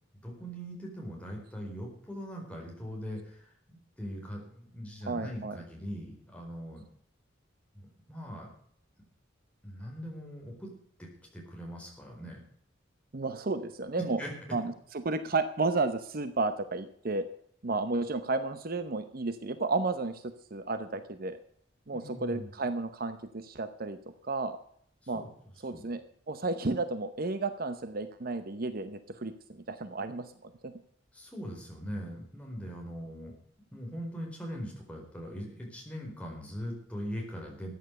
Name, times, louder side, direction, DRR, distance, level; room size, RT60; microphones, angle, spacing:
voice 1, 0.2-6.9 7.7-8.5 9.6-10.7 11.0-12.4 14.0-14.6 21.9-22.5 25.0-25.3 25.7-25.8 31.1-33.3 33.7-37.7, equal, 5° left, -1 dB, 4.5 m, -41 dB
voice 2, 5.1-5.6 13.1-14.2 14.5-17.3 17.6-20.2 20.5-21.4 21.9-24.6 25.1-25.2 25.6-30.7, right 3 dB, 50° right, 10 dB, 0.8 m, -32 dB
14.0 x 9.3 x 6.7 m, 0.64 s
head